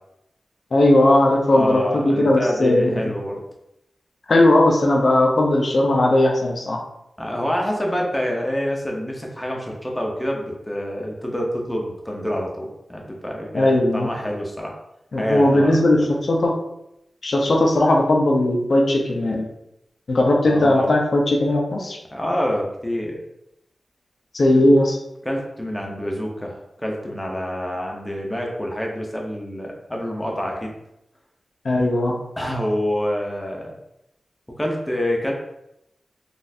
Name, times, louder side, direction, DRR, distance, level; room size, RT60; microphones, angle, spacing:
voice 1, 0.7-3.0 4.3-6.8 13.5-14.1 15.1-16.6 17.2-19.5 20.1-22.0 24.3-25.0 31.6-32.2, left 1 dB, 55° left, 1 dB, 0.6 m, -18 dB
voice 2, 1.5-3.4 7.2-14.7 15.1-15.8 16.0-16.1 20.4-20.9 22.1-23.2 25.2-30.7 32.4-33.8 34.6-35.3, equal, 10° left, -1 dB, 0.6 m, -27 dB
4.0 x 2.5 x 2.6 m, 0.83 s
wide cardioid pair, 130°, 0 cm